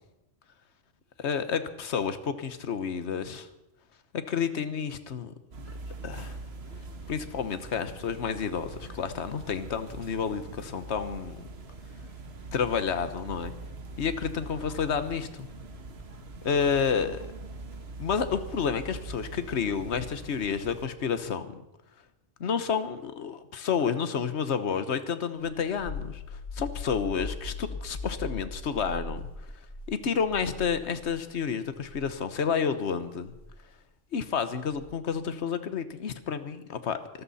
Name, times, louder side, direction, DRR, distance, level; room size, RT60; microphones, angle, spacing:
voice 1, 1.2-3.5 4.1-5.3 6.0-6.4 7.1-11.4 12.5-13.5 14.0-15.5 16.4-17.3 18.0-21.6 22.4-29.2 29.9-33.3 34.1-37.0, left 6 dB, 70° left, 11 dB, 1.4 m, -30 dB
sound 1, 5.5-20.9, right 2 dB, 60° right, 1.6 m, -43 dB
sound 2, 25.4-31.3 31.7-32.1 33.2-33.5 34.7-35.1, left 3 dB, 55° left, 2.6 m, -39 dB
24.5 x 14.0 x 4.2 m, 0.91 s
omnidirectional pair, 1.2 m